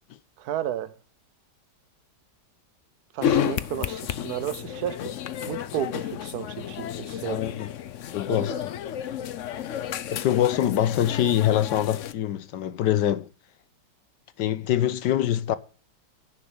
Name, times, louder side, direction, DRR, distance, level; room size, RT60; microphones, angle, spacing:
voice 1, 0.4-0.9 3.1-5.0 5.5-7.4 8.3-8.6, right 11 dB, 65° right, 1.3 m, -32 dB
sound 1, 3.2-12.1, left 9 dB, 60° left, 0.8 m, -31 dB
voice 2, 7.2-7.7 8.1-8.7 10.1-13.3 14.4-15.6, left 11 dB, 80° left, 1.4 m, -24 dB
10.5 x 6.7 x 6.3 m
omnidirectional pair, 1.9 m